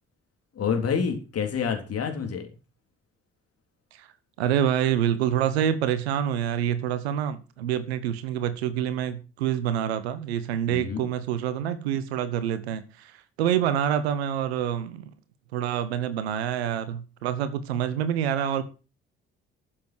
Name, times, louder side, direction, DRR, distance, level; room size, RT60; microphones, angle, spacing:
voice 1, 0.5-2.5 10.7-11.1, left 6 dB, 50° left, 3.7 m, -28 dB
voice 2, 4.4-15.1 15.5-18.6, right 10 dB, 80° right, 1.1 m, -27 dB
13.0 x 7.7 x 6.3 m
figure-of-eight pair, 45°, 31 cm